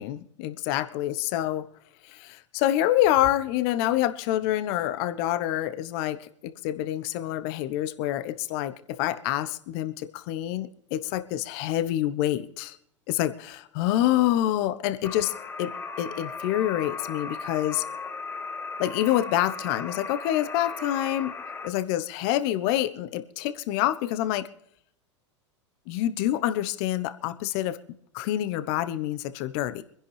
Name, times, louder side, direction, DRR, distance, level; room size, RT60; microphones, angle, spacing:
voice 1, 0.0-1.7 2.1-6.3 6.6-12.8 13.1-17.8 18.8-21.3 21.6-24.5 25.9-27.8 28.1-29.8, left 13 dB, 50° left, 13 dB, 1.2 m, -27 dB
sound 1, 15.0-21.7, left 4 dB, 15° left, 3.1 m, -37 dB
25.0 x 10.5 x 3.4 m, 0.71 s
hypercardioid pair, 90°, 16 cm